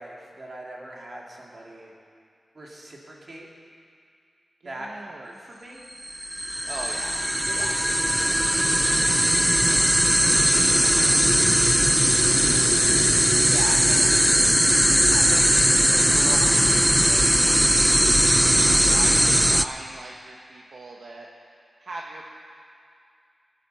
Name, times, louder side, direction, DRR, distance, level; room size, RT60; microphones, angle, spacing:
voice 1, 0.0-1.9 2.5-3.5 4.6-5.8 7.4-8.7 9.0-9.1 9.6-10.0 10.8-11.8 13.3-13.5 13.9-14.1, right 1 dB, 40° right, -3 dB, 2.7 m, -42 dB
voice 2, 4.6-5.3 6.6-7.1 7.5-7.7 10.2-10.3 10.7-11.0 13.1-14.1 14.5-18.3 18.9-21.3 21.8-22.2, right 2 dB, 65° right, -1 dB, 1.2 m, -39 dB
sound 1, 6.0-19.7, equal, 5° right, 0.4 m, -19 dB
20.5 x 8.5 x 6.9 m, 2.3 s
wide cardioid pair, 115°, 0 cm